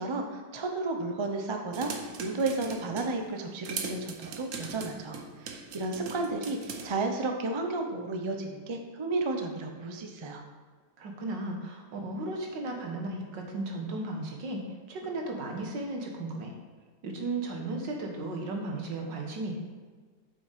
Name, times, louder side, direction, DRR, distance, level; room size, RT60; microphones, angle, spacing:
voice 1, 0.0-10.4, right 3 dB, 40° right, 3 dB, 0.4 m, -33 dB
sound 1, 1.7-3.2 3.6-6.9, right 5 dB, 55° right, 1.1 m, -40 dB
voice 2, 11.0-14.6 14.9-16.5 17.0-19.5, right 2 dB, 90° right, 2 dB, 2.0 m, -35 dB
7.7 x 5.9 x 5.1 m, 1.4 s
omnidirectional pair, 1.9 m